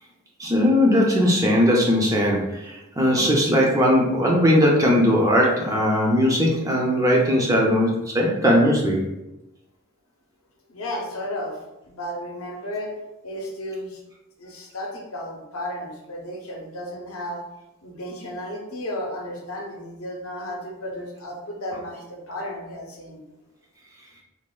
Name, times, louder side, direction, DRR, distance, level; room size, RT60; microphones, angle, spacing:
voice 1, 0.4-9.0, equal, 15° right, -2 dB, 0.3 m, -19 dB
voice 2, 10.7-13.0 13.2-14.0 14.4-17.4 17.8-23.2, left 1 dB, 75° left, 0 dB, 0.6 m, -33 dB
3.1 x 2.1 x 2.3 m, 0.94 s
head